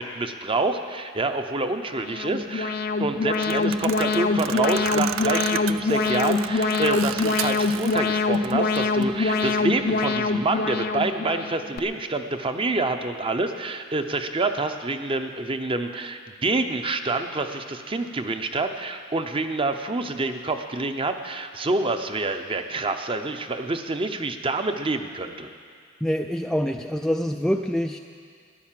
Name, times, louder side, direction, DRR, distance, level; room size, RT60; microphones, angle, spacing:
voice 1, 0.0-2.7 3.0-25.5, right 2 dB, 25° right, 7 dB, 0.7 m, -27 dB
Alarm, 1.9-11.8, left 3 dB, 50° left, 0.6 m, -24 dB
sound 1, 3.3-8.0 8.3-9.0, right 10 dB, 85° right, 0.4 m, -33 dB
voice 2, 26.0-28.0, equal, 5° left, 4 dB, 0.3 m, -25 dB
13.5 x 10.5 x 7.5 m, 2.1 s
head